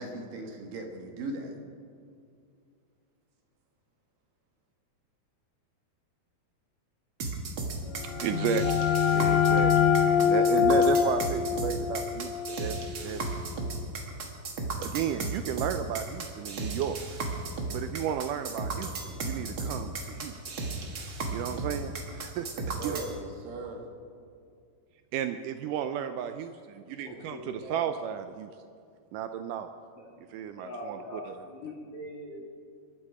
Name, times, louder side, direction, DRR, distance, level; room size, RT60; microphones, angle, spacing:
voice 1, 0.0-1.5 22.5-23.9, right 2 dB, 65° right, 2 dB, 3.2 m, -38 dB
sound 1, 7.2-23.1, right 3 dB, 45° right, 1.8 m, -35 dB
sound 2, 8.0-13.5, left 8 dB, 80° left, 2.8 m, -25 dB
voice 2, 8.0-13.4 14.8-17.0 17.7-20.5 21.3-23.0 25.1-28.5 29.1-29.7 30.3-31.3, right 9 dB, 90° right, 9 dB, 1.8 m, -34 dB
voice 3, 27.0-27.9 30.0-30.2 30.6-32.4, left 1 dB, 45° left, -2 dB, 2.6 m, -42 dB
25.0 x 11.5 x 4.9 m, 2.3 s
omnidirectional pair, 4.4 m